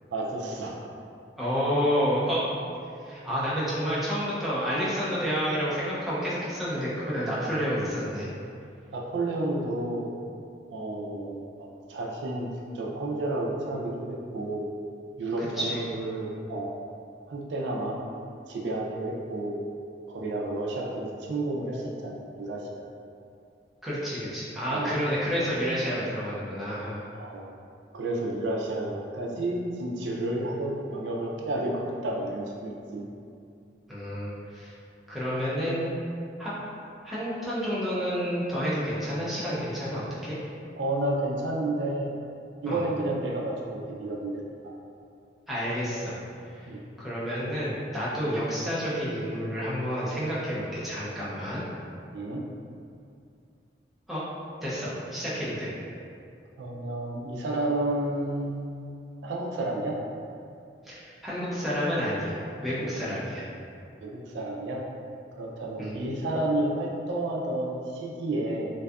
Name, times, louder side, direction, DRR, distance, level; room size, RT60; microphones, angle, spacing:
voice 1, 0.1-0.8 8.9-10.1 10.7-12.5 12.7-14.7 15.2-16.8 17.3-18.0 18.5-19.6 20.1-22.7 24.7-25.0 27.1-27.5 27.9-33.0 40.8-42.1 42.6-44.4 46.7-46.8 52.1-52.4 56.6-58.7 59.2-60.0 64.0-64.8 65.4-68.7, right 1 dB, 85° right, -2 dB, 0.4 m, -31 dB
voice 2, 1.4-2.5 3.1-8.3 15.4-15.8 23.8-27.0 33.9-34.7 35.1-35.9 36.4-36.7 37.0-40.4 42.7-42.8 45.5-46.1 46.5-46.7 47.0-51.6 54.1-54.2 54.6-55.7 60.8-63.4 65.8-65.9, equal, ahead, -10 dB, 0.5 m, -29 dB
2.6 x 2.3 x 2.3 m, 2.5 s
head